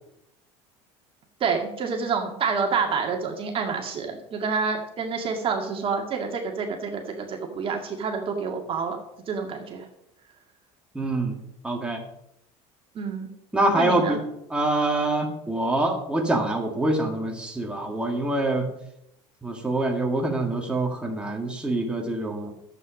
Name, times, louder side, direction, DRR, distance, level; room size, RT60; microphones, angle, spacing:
voice 1, 1.4-9.0 9.3-9.9 13.0-13.3 13.7-14.2, right 5 dB, 40° right, 2 dB, 2.1 m, -28 dB
voice 2, 10.9-11.4 11.6-12.0 13.5-14.2 14.5-18.7 19.4-22.5, right 2 dB, 5° right, 0 dB, 2.3 m, -25 dB
11.0 x 8.2 x 5.3 m, 0.80 s
supercardioid pair, 105°, 14 cm